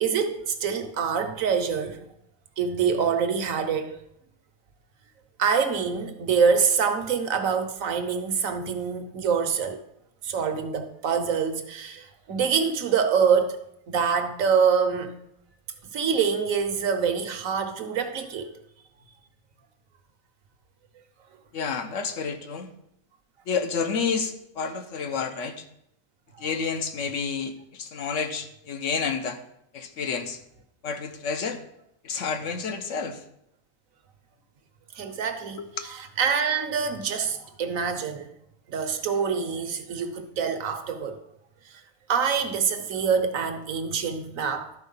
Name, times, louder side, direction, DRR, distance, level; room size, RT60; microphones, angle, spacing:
voice 1, 0.0-2.0 2.6-4.0 5.4-9.8 10.2-13.6 13.9-15.1 15.9-18.5 26.4-26.5 34.9-35.6 35.8-38.3 38.7-41.2 41.7-41.8 42.1-44.7, right 6 dB, 65° right, 1.2 m, -25 dB
voice 2, 21.5-22.7 23.5-25.7 26.4-29.4 29.7-30.4 30.8-31.6 32.0-33.2 35.6-35.9, left 5 dB, 60° left, 1.1 m, -30 dB
12.5 x 4.3 x 5.4 m
omnidirectional pair, 1.6 m